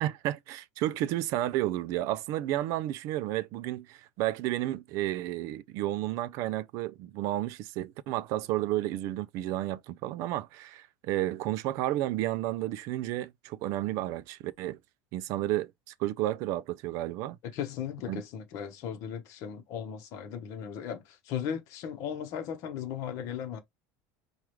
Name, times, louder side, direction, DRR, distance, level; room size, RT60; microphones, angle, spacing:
voice 1, 0.0-14.8 15.1-15.7 16.0-17.4 18.1-18.2, right 14 dB, 45° right, 0.4 m, -32 dB
voice 2, 17.5-23.6, left 8 dB, 45° left, 1.0 m, -37 dB
4.8 x 2.4 x 3.0 m
cardioid pair, 175°, 7 cm